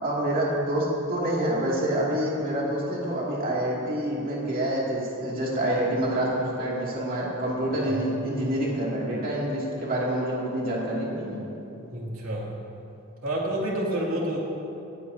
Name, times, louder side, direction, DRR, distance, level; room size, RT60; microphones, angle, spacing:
voice 1, 0.0-11.4, right 1 dB, 45° right, -5 dB, 2.5 m, -27 dB
voice 2, 11.9-12.6 13.2-14.4, right 1 dB, 70° right, -4 dB, 2.5 m, -29 dB
18.0 x 16.0 x 2.8 m, 2.9 s
head